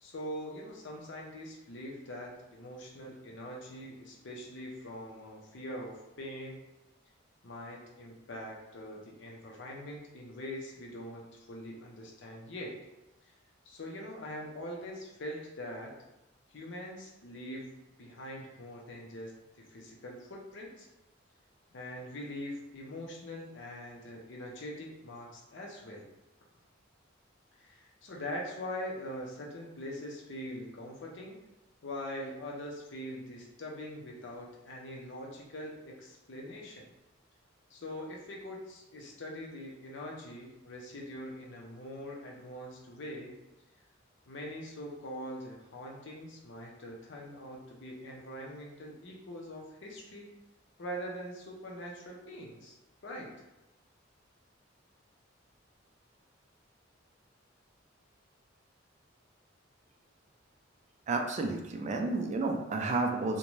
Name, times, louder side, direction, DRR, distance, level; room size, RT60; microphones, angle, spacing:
voice 1, 0.0-6.7 7.4-12.8 13.7-15.9 16.5-17.7 18.0-20.9 21.7-26.1 27.6-31.4 31.8-36.9 37.7-43.4 44.3-50.3 50.8-52.8 53.0-53.3, equal, 65° left, -1 dB, 0.6 m, -43 dB
voice 2, 61.1-63.4, right 3 dB, 40° right, 3 dB, 0.3 m, -31 dB
2.6 x 2.2 x 3.0 m, 0.97 s
head